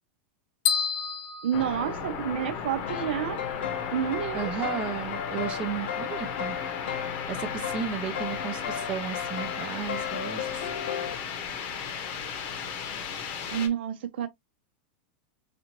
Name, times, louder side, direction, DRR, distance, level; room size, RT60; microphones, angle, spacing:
sound 1, 0.7-2.6, left 7 dB, 65° left, 1.1 m, -30 dB
voice 1, 1.4-3.4 3.9-4.5 13.5-14.3, right 9 dB, 70° right, 0.8 m, -29 dB
sound 2, 1.5-13.7, left 6 dB, 35° left, 0.9 m, -35 dB
sound 3, 2.8-11.2, left 8 dB, 85° left, 0.7 m, -35 dB
voice 2, 4.3-6.6 7.3-10.7, right 8 dB, 20° right, 0.6 m, -34 dB
4.2 x 2.6 x 2.9 m
supercardioid pair, 170°, 6 cm